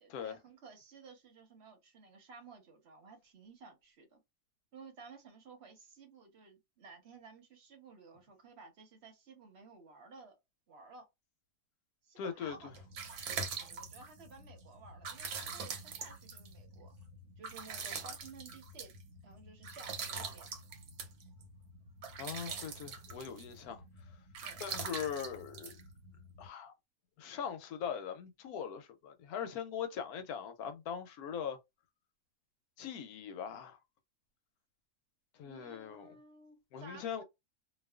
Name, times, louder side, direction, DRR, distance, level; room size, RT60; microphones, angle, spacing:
voice 1, 0.0-4.2 4.7-10.4 10.7-11.1 12.0-12.7 13.5-16.9 17.4-18.9 19.2-20.5 22.5-22.6 24.4-24.6 35.4-37.2, right 4 dB, 50° right, 0.9 m, -55 dB
voice 2, 12.2-12.7 22.2-23.8 24.6-25.8 26.4-26.7 27.2-31.6 32.8-33.8 35.3-36.1 36.7-37.2, left 7 dB, 75° left, 1.1 m, -41 dB
sound 1, 12.5-26.5, right 5 dB, 80° right, 1.2 m, -44 dB
2.6 x 2.3 x 2.2 m
omnidirectional pair, 1.6 m